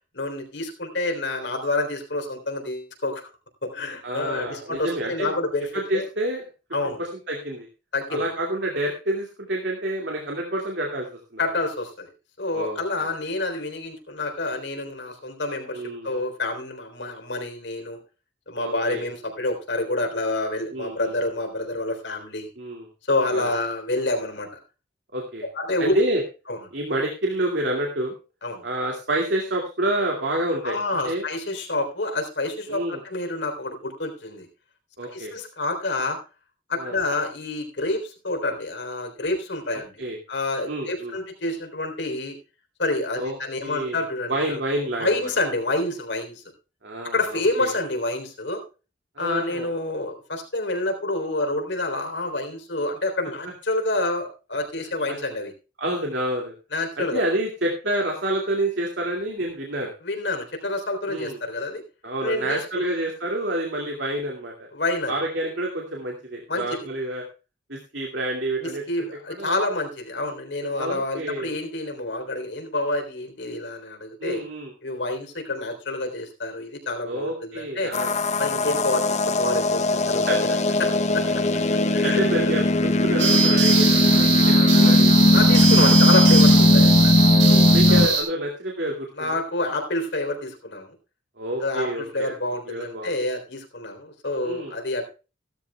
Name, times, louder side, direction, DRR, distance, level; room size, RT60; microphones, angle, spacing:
voice 1, 0.1-3.3 3.6-6.1 6.7-7.0 7.9-8.3 11.4-12.1 12.4-18.0 18.5-22.5 23.1-24.6 25.6-26.1 26.5-26.6 28.4-28.6 30.6-34.5 35.0-36.2 36.7-42.4 42.8-44.6 45.0-46.4 47.0-48.6 49.2-55.5 56.7-57.2 60.0-61.8 62.2-62.8 64.7-65.1 66.5-66.9 68.6-74.4 74.8-77.9 78.4-80.5 80.8-81.4 81.9-82.2 85.3-87.2 87.9-88.2 89.2-91.0 91.6-95.1, left 2 dB, 70° left, 5 dB, 3.7 m, -28 dB
voice 2, 4.0-5.4 5.7-6.5 7.0-7.7 8.1-11.1 11.3-11.4 12.5-13.1 15.7-16.1 18.5-19.1 20.7-21.1 22.6-22.9 23.3-23.5 25.1-25.5 25.8-26.2 26.7-28.1 28.6-30.8 31.1-31.2 32.7-33.0 35.0-35.3 36.8-37.0 40.0-40.2 40.7-41.1 43.2-44.0 44.3-45.3 46.8-47.7 49.2-49.7 55.1-55.2 55.8-56.5 57.0-59.9 61.1-61.4 62.0-64.5 65.1-67.2 67.7-68.8 69.4-69.6 70.8-71.5 74.2-74.7 77.0-78.2 80.3-80.6 82.0-85.1 85.8-85.9 87.4-89.4 91.4-92.4 92.7-93.2 94.4-94.7, right 1 dB, 65° right, 0 dB, 2.3 m, -28 dB
sound 1, 77.9-88.1, left 2 dB, 40° left, 0.8 m, -18 dB
sound 2, 83.2-88.2, right 5 dB, 85° right, 5.0 m, -22 dB
16.5 x 13.0 x 2.3 m, 0.32 s
head